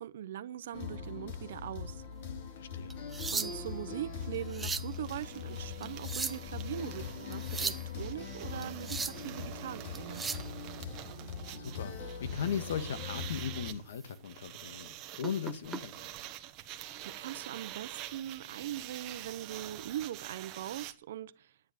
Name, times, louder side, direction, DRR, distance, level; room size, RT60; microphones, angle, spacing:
voice 1, 0.0-2.0 3.3-10.2 17.0-21.5, right 11 dB, 75° right, 0.8 m, -41 dB
sound 1, 0.7-13.7, left 6 dB, 60° left, 2.7 m, -41 dB
voice 2, 2.6-3.0 11.6-11.9 12.2-16.2, left 8 dB, 80° left, 1.5 m, -37 dB
sound 2, 2.9-3.8 4.3-4.9 5.8-6.6 7.3-7.9 8.6-9.3 10.0-10.5 12.5-12.7 13.2-13.4 13.9-14.0 15.2-15.8 16.9-17.1, right 4 dB, 10° right, 0.6 m, -37 dB
sound 3, 3.7-3.8 4.0-20.9, right 13 dB, 40° right, 1.3 m, -47 dB
9.8 x 9.6 x 9.4 m
hypercardioid pair, 140°, 0 cm